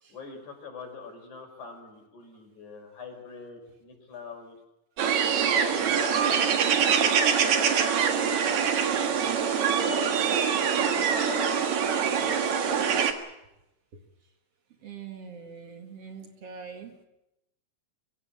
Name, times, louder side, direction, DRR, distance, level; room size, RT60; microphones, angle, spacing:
voice 1, 0.1-4.6 5.4-6.4 6.9-8.5 8.9-10.2 11.2-12.8, left 5 dB, 75° left, 3 dB, 6.5 m, -43 dB
sound 1, 5.0-13.1, right 7 dB, 70° right, 3.1 m, -24 dB
voice 2, 14.8-17.0, right 6 dB, 55° right, 4 dB, 3.2 m, -43 dB
24.0 x 16.5 x 9.9 m, 0.91 s
omnidirectional pair, 3.4 m